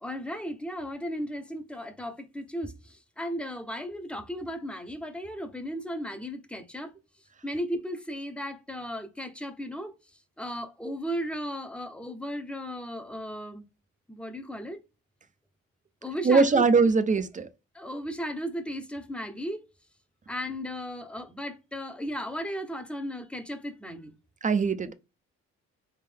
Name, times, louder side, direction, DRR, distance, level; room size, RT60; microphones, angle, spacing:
voice 1, 0.0-6.9 7.4-9.9 10.4-13.7 14.1-14.8 16.0-16.6 17.7-19.6 20.3-24.1, equal, 5° left, 0.8 m, -35 dB
voice 2, 16.2-17.5 24.4-24.9, right 4 dB, 25° right, 0.6 m, -21 dB
3.8 x 3.1 x 3.4 m
cardioid pair, 90°, 30 cm